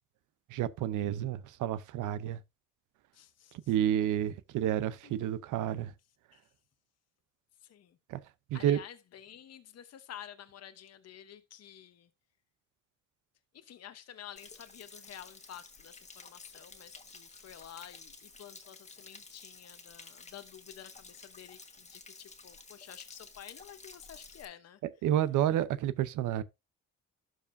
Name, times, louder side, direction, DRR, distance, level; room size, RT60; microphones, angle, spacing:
voice 1, 0.5-2.4 3.7-5.9 8.1-8.2 8.5-8.8 25.0-26.4, right 11 dB, 85° right, 0.8 m, -30 dB
voice 2, 3.1-3.6 4.0-4.1 5.0-5.3 6.3-6.4 7.6-8.0 8.5-12.1 13.5-24.8, left 10 dB, 55° left, 0.9 m, -50 dB
Stream / Splash splatter / Trickle dribble, 14.4-24.4, left 3 dB, 25° left, 1.5 m, -52 dB
12.5 x 4.9 x 2.6 m
cardioid pair, 90°, 30 cm